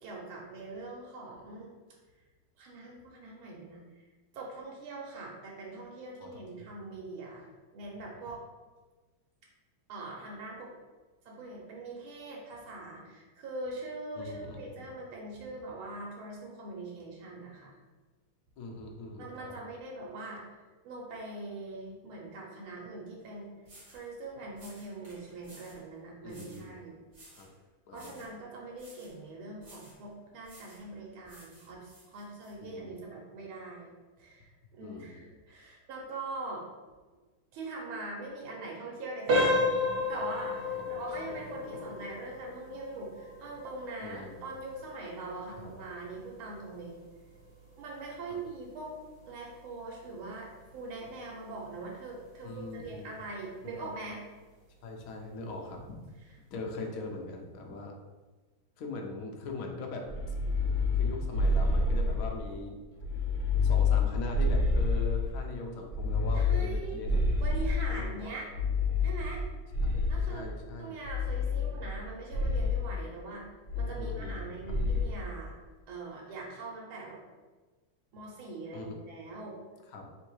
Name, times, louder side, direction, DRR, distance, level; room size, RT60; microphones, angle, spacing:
voice 1, 0.0-1.7 2.6-4.1 4.3-8.4 9.9-10.7 11.2-17.8 19.2-20.4 20.8-23.5 23.9-27.0 27.9-33.9 34.2-36.6 37.5-39.6 40.1-46.9 47.8-48.9 49.2-54.2 66.3-68.5 69.0-69.4 70.1-73.5 73.7-75.5 75.9-77.2 78.1-79.6, right 2 dB, 90° right, -2 dB, 1.7 m, -42 dB
voice 2, 6.2-6.7 14.2-14.7 18.6-19.6 26.2-26.7 27.4-27.5 27.9-28.3 32.6-33.0 34.8-35.2 40.7-41.2 41.7-41.8 44.0-44.5 45.6-45.7 48.3-48.4 52.4-53.1 53.6-53.9 54.8-56.0 56.5-58.0 58.8-60.3 60.9-62.8 63.6-67.2 67.9-68.3 69.8-71.0 74.0-74.8 78.7-79.0 79.9-80.1, left 2 dB, 70° left, 1 dB, 0.8 m, -41 dB
sound 1, 23.2-23.3 23.6-24.1 24.5-25.8 26.3-26.7 27.1-27.5 27.9-28.4 28.7-29.2 29.6-30.0 30.4-30.9 31.2-32.5, right 1 dB, 35° right, 1.1 m, -55 dB
sound 2, 39.3-49.9 50.3-50.5 51.1-51.2 51.7-51.9, left 2 dB, 60° right, 1.4 m, -34 dB
sound 3, 60.1-62.5 63.0-65.4 65.9-68.1 68.5-70.4 71.0-72.0 72.3-72.8 73.7-74.4 74.7-75.1, left 3 dB, 40° left, 1.1 m, -28 dB
3.6 x 2.7 x 4.5 m, 1.3 s
omnidirectional pair, 2.2 m